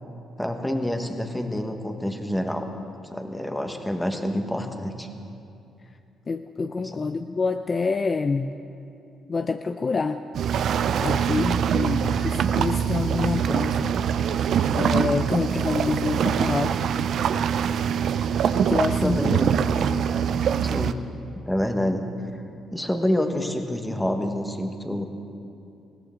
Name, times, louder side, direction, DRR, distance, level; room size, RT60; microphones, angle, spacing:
voice 1, 0.4-2.7 3.1-5.1 6.8-7.1 19.0-19.6 20.6-21.0 21.4-22.1 22.7-25.1, left 1 dB, 5° left, 5 dB, 1.4 m, -27 dB
voice 2, 6.3-8.5 9.3-10.2 11.0-13.9 14.8-16.8 18.6-19.4, left 4 dB, 35° left, 8 dB, 0.5 m, -27 dB
sound 1, 10.3-20.9, right 8 dB, 65° right, 0.5 m, -24 dB
21.0 x 16.5 x 3.8 m, 2.6 s
cardioid pair, 90°, 0 cm